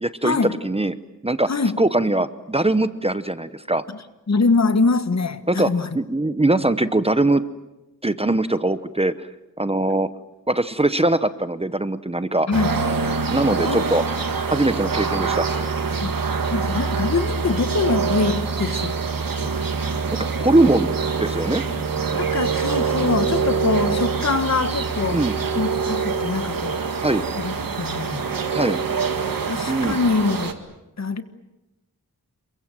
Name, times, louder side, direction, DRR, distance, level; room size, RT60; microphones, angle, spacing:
voice 1, 0.0-1.0 1.2-1.5 1.8-3.8 5.5-7.4 8.0-9.3 9.6-10.1 10.5-12.5 13.3-14.0 14.5-15.5 20.4-20.9 21.2-21.6 25.1-25.3 27.0-27.2 28.5-28.8 29.7-30.0, right 2 dB, 20° right, 0.9 m, -21 dB
voice 2, 4.3-5.9 12.5-12.8 13.7-13.8 16.0-16.1 16.5-18.9 19.4-19.5 22.1-25.2 25.5-26.8 27.4-28.2 29.4-30.6 31.0-31.2, left 4 dB, 50° left, 1.5 m, -23 dB
sound 1, 12.5-30.5, right 5 dB, 80° right, 2.1 m, -25 dB
28.5 x 23.5 x 7.6 m
wide cardioid pair, 110°, 33 cm